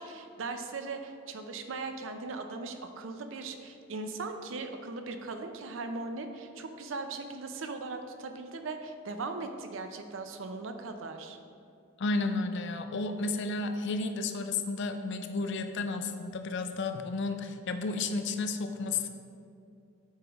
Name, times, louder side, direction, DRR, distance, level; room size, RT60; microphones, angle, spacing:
voice 1, 0.0-11.4, right 3 dB, 65° right, 6 dB, 0.5 m, -39 dB
voice 2, 12.0-19.1, left 3 dB, 60° left, 8 dB, 0.4 m, -32 dB
8.2 x 4.8 x 3.0 m, 2.5 s
head